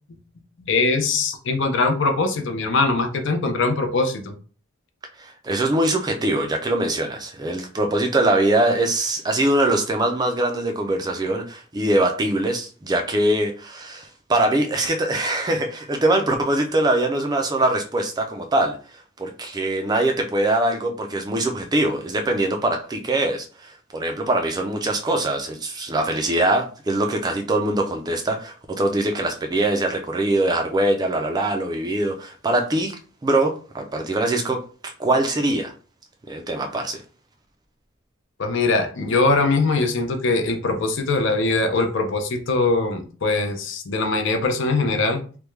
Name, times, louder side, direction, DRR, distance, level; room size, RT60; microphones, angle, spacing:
voice 1, 0.6-4.3 38.4-45.2, left 3 dB, 60° left, 0.5 m, -22 dB
voice 2, 5.2-33.0 33.2-35.7 36.3-37.0, right 1 dB, 20° right, 0.4 m, -23 dB
3.4 x 2.2 x 3.1 m
head